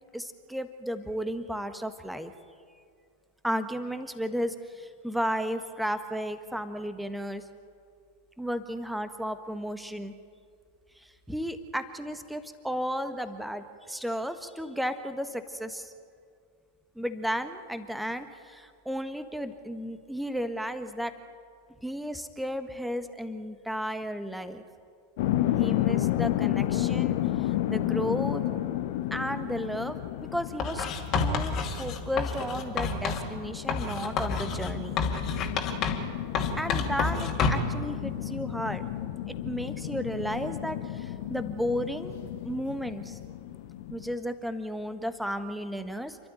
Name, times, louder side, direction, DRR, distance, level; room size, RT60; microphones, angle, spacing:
voice 1, 0.1-2.3 3.4-7.4 8.4-10.1 11.0-15.9 16.9-21.1 21.8-24.6 25.6-28.4 29.1-30.9 31.2-35.0 36.6-38.8 39.3-42.1 42.4-43.2 43.9-46.2, equal, ahead, 10 dB, 1.4 m, -34 dB
sound 1, 25.2-44.1, left 13 dB, 50° left, 1.1 m, -32 dB
Writing, 30.6-33.3 33.7-36.1 36.4-37.8, left 4 dB, 30° left, 2.5 m, -29 dB
29.0 x 12.5 x 9.1 m, 2.2 s
figure-of-eight pair, 90°, 0 cm